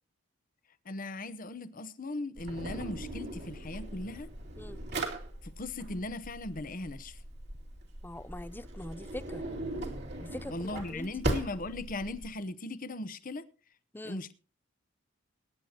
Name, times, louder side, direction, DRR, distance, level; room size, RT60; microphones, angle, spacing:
voice 1, 0.8-4.3 5.4-7.2 10.5-13.4 14.0-14.3, left 2 dB, 45° left, 0.9 m, -38 dB
Drawer open or close, 2.4-12.3, right 1 dB, 60° right, 2.5 m, -39 dB
voice 2, 8.0-9.4 10.2-11.3 13.9-14.2, left 1 dB, 10° left, 0.5 m, -43 dB
22.0 x 10.0 x 2.9 m
head